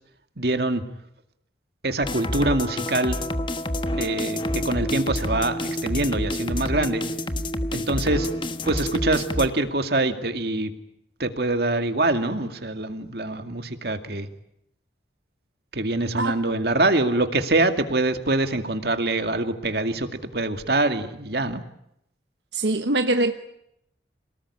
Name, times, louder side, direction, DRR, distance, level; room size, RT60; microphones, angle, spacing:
voice 1, 0.4-0.8 1.8-3.2 4.0-7.0 7.7-8.3 8.7-10.7 11.2-14.3 15.7-20.1 20.3-21.6, right 2 dB, 60° right, 7 dB, 2.3 m, -24 dB
sound 1, 2.0-9.5, left 1 dB, 25° left, 1.2 m, -28 dB
voice 2, 22.5-23.3, right 2 dB, 85° right, 7 dB, 1.2 m, -23 dB
28.0 x 19.0 x 10.0 m, 0.78 s
head